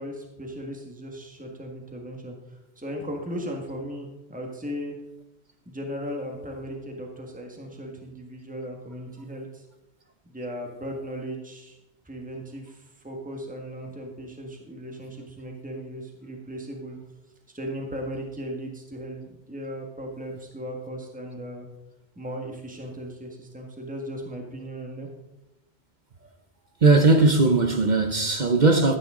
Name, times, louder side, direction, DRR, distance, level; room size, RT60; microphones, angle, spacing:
voice 1, 0.0-5.0 5.6-9.6 10.2-11.8 12.0-17.0 17.5-21.7 22.1-25.1, equal, 10° right, 1.6 m, -37 dB
voice 2, 26.8-29.0, right 3 dB, 50° right, 1.0 m, -18 dB
14.0 x 9.1 x 3.8 m
omnidirectional pair, 1.1 m